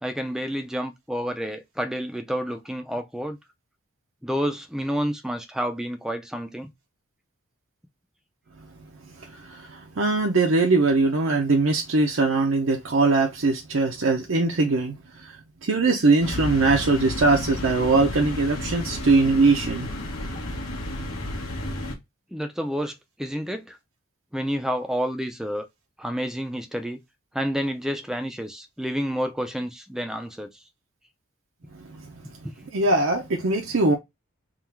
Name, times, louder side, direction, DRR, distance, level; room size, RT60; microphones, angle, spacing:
voice 1, 0.0-3.4 4.2-6.7 22.3-23.8 24.3-25.7 26.0-27.0 27.3-30.5 32.4-32.5, equal, ahead, 0.4 m, -29 dB
voice 2, 9.3-15.3 15.6-19.9 31.9-32.0 32.7-34.0, right 3 dB, 60° right, 0.6 m, -21 dB
sound 1, 16.2-21.9, left 1 dB, 85° left, 1.3 m, -32 dB
3.7 x 2.4 x 4.4 m
head